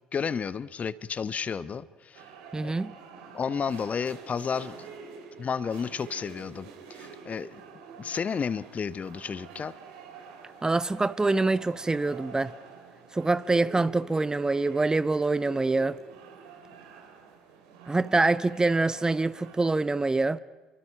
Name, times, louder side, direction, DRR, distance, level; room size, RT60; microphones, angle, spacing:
voice 1, 0.1-2.2 2.6-2.7 3.3-4.7 5.4-7.6 8.0-9.7, left 6 dB, 40° left, 0.9 m, -32 dB
sound 1, 2.1-19.6, right 5 dB, 75° right, 2.7 m, -47 dB
voice 2, 2.5-2.9 10.6-12.5 13.1-16.0 17.9-20.4, right 3 dB, 20° right, 0.8 m, -25 dB
29.0 x 24.5 x 5.8 m
figure-of-eight pair, 55°, 4 cm